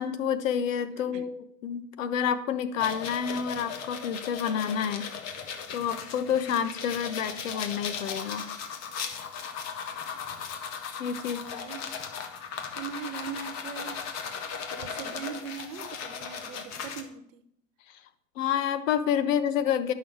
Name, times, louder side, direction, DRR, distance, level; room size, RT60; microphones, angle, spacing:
voice 1, 0.0-1.4 1.6-8.5 11.0-11.6 17.9-18.0 18.4-19.9, left 8 dB, 70° left, 12 dB, 1.1 m, -29 dB
sound 1, 2.8-17.0, left 6 dB, 40° left, 1.4 m, -37 dB
voice 2, 11.2-11.8 12.7-14.0 14.7-17.5, right 8 dB, 70° right, 11 dB, 1.1 m, -40 dB
11.0 x 6.2 x 4.7 m, 0.73 s
hypercardioid pair, 105°, 40 cm